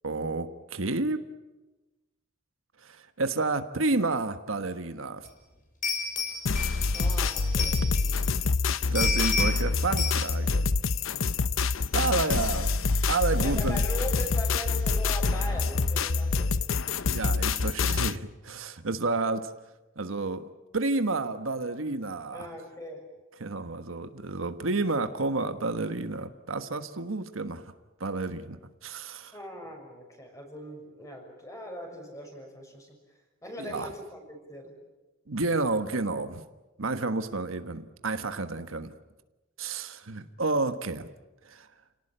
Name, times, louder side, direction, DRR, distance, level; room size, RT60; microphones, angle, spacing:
voice 1, 0.0-1.2 2.8-5.3 8.9-10.6 11.9-12.7 13.1-13.8 17.1-19.5 20.0-22.5 23.4-27.7 28.0-28.6 28.8-29.3 33.6-33.9 35.3-36.4 36.8-38.9 39.6-41.1 41.5-41.7, right 3 dB, 80° right, 9 dB, 1.4 m, -30 dB
sound 1, 5.3-5.4 5.8-8.3 8.7-9.7 10.0-10.2, left 4 dB, 40° left, 6.3 m, -31 dB
sound 2, 6.5-18.2, left 4 dB, 75° left, 0.8 m, -26 dB
voice 2, 6.9-8.2 13.4-16.6 22.3-23.1 29.3-33.0 33.4-34.7, equal, 15° left, 2 dB, 6.6 m, -40 dB
29.0 x 18.5 x 8.9 m, 1.1 s
head